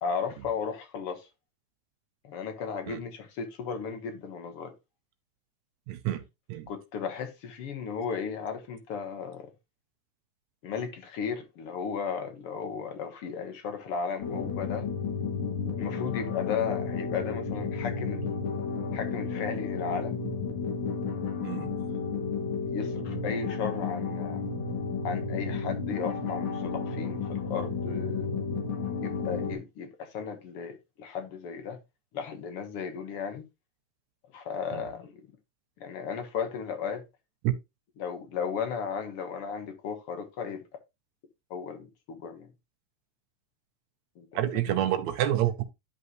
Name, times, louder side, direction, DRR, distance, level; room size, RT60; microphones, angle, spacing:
voice 1, 0.0-1.3 2.2-4.7 6.7-9.5 10.6-14.9 15.8-18.4 18.9-20.2 22.7-24.5 25.0-28.3 29.0-31.8 32.1-33.5 34.3-35.2 35.8-37.0 38.0-40.6 41.5-42.5 44.2-44.5 44.8-44.9, left 6 dB, 60° left, 2.0 m, -35 dB
voice 2, 5.9-6.2 6.5-6.7 21.4-21.7 34.7-34.8 37.4-37.5 44.3-45.6, right 13 dB, 80° right, 2.0 m, -28 dB
sound 1, 14.2-29.5, left 5 dB, 80° left, 3.1 m, -32 dB
11.0 x 5.3 x 3.0 m
omnidirectional pair, 3.3 m